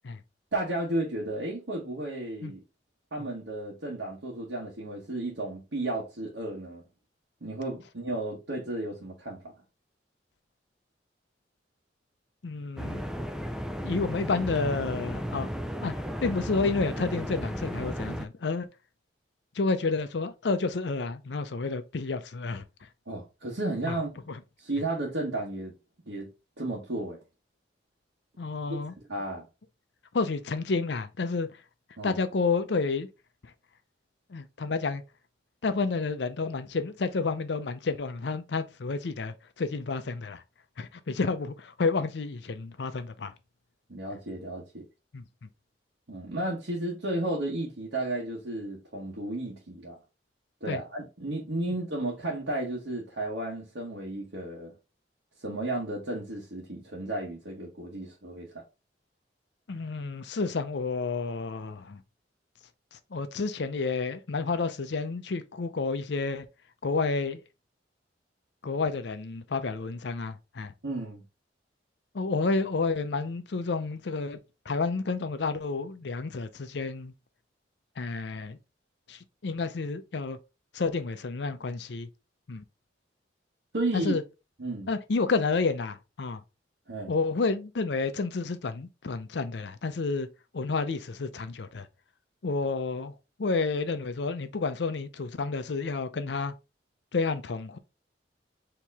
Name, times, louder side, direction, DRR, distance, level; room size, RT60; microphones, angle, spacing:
voice 1, 0.5-2.6 3.1-6.8 7.4-9.5 23.1-24.1 24.6-25.7 26.1-26.3 26.6-27.2 29.1-29.5 32.0-32.2 43.9-44.8 46.1-50.0 50.6-54.7 55.4-58.6 70.8-71.2 83.7-84.2 84.6-84.9 86.9-87.1, right 2 dB, 80° right, 1.1 m, -33 dB
voice 2, 12.4-13.0 13.8-15.5 15.8-18.7 19.6-22.6 23.9-24.0 24.3-24.4 28.4-28.9 30.1-31.5 32.0-33.1 34.3-35.0 35.6-40.4 40.8-43.3 45.1-45.5 50.7-50.8 59.7-62.0 62.9-66.5 66.8-67.4 68.6-70.7 72.1-74.4 74.7-77.1 78.0-78.6 79.1-80.4 80.7-82.1 82.5-82.6 83.9-84.2 84.9-86.4 87.1-90.3 90.5-91.9 92.4-93.1 93.4-96.5 97.1-97.8, left 4 dB, 70° left, 0.6 m, -30 dB
sound 1, 12.8-18.3, equal, 5° right, 0.3 m, -34 dB
4.6 x 2.9 x 3.4 m
head